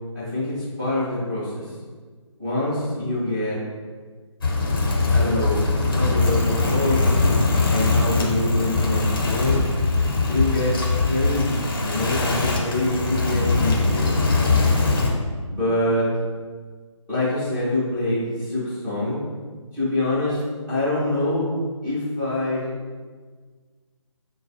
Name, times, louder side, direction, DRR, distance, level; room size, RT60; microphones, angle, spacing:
voice 1, 0.1-1.5 2.4-3.6 5.1-7.0 7.7-9.6 10.3-10.7 11.0-14.1 15.5-16.1 17.1-19.2 19.7-20.4 20.7-21.5 21.8-22.7, left 1 dB, ahead, -20 dB, 0.4 m, -25 dB
sound 1, 4.4-15.1, left 3 dB, 45° left, 0.9 m, -21 dB
6.8 x 2.3 x 2.8 m, 1.5 s
figure-of-eight pair, 150°, 16 cm